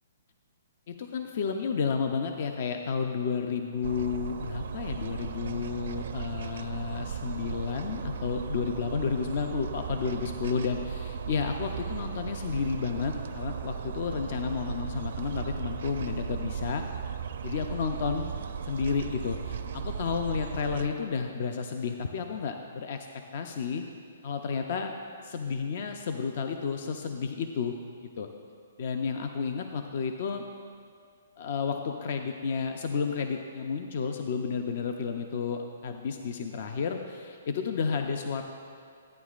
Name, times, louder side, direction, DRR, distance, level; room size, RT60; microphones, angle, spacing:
voice 1, 0.9-16.8 17.4-18.3 18.6-23.8 24.2-24.9 25.2-27.7 28.2-28.3 28.8-30.4 31.4-38.4, left 5 dB, 45° left, 5 dB, 0.5 m, -31 dB
sound 1, 3.8-20.9, right 7 dB, 65° right, 0.4 m, -36 dB
13.0 x 9.2 x 2.4 m, 2.2 s
hypercardioid pair, 160°, 0 cm